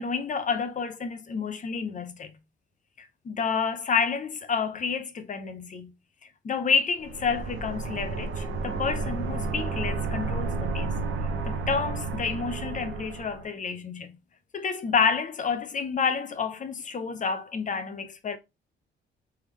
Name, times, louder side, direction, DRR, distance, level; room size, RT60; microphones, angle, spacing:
voice 1, 0.0-2.4 3.0-5.9 6.4-11.0 11.5-14.1 14.5-18.4, left 5 dB, 40° left, 0.7 m, -29 dB
sound 1, 7.0-13.5, right 3 dB, 75° right, 0.8 m, -31 dB
3.5 x 3.4 x 3.1 m
cardioid pair, 90°, 20 cm